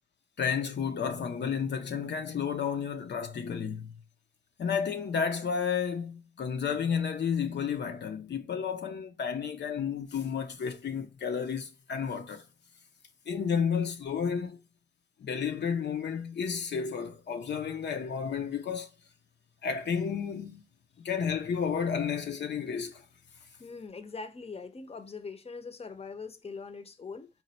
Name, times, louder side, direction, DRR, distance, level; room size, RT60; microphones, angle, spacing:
voice 1, 0.4-4.0 4.6-12.4 13.3-14.6 15.2-18.9 19.6-20.6 21.0-23.0, left 7 dB, 85° left, 0.5 m, -31 dB
voice 2, 23.6-27.3, left 4 dB, 35° left, 0.5 m, -42 dB
4.1 x 2.1 x 4.1 m
cardioid pair, 55°, 17 cm